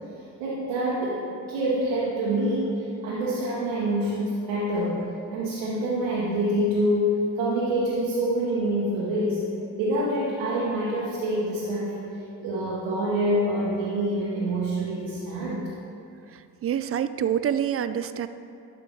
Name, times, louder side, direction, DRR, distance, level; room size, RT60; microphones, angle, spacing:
voice 1, 0.4-5.0 5.3-9.4 9.8-11.9 12.4-15.7, right 1 dB, 80° right, -8 dB, 1.4 m, -26 dB
voice 2, 16.3-18.3, right 9 dB, 35° right, 12 dB, 0.4 m, -27 dB
11.5 x 4.9 x 3.5 m, 2.6 s
hypercardioid pair, 40°, 46 cm